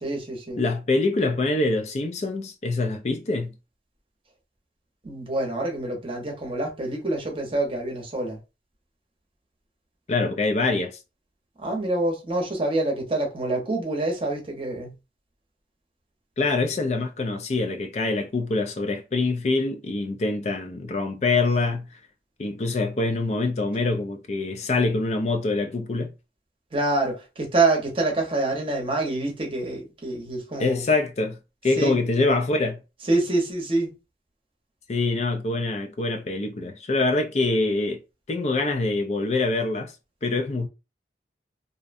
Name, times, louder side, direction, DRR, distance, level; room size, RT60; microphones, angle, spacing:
voice 1, 0.0-0.6 5.0-8.4 11.6-14.9 26.7-30.9 31.8-32.0 33.1-33.9, right 2 dB, 30° right, 0.7 m, -26 dB
voice 2, 0.6-3.5 10.1-10.9 16.4-21.9 22.4-26.1 30.6-31.4 31.6-32.8 34.9-38.0 38.3-39.9 40.2-40.7, left 3 dB, 40° left, 0.4 m, -25 dB
2.6 x 2.1 x 2.5 m
head